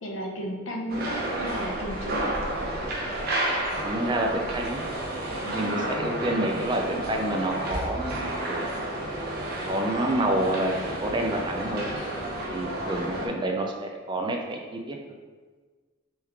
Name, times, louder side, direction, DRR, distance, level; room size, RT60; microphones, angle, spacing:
voice 1, 0.0-2.3 5.4-5.9 9.0-9.4 12.8-13.4, equal, 75° left, 1 dB, 0.6 m, -35 dB
sound 1, 0.9-13.3, right 1 dB, 50° right, 0.7 m, -31 dB
voice 2, 3.8-4.8 5.5-8.6 9.7-11.9 12.5-15.0, right 1 dB, 25° right, 2 dB, 0.3 m, -28 dB
3.5 x 3.1 x 3.4 m, 1.4 s
head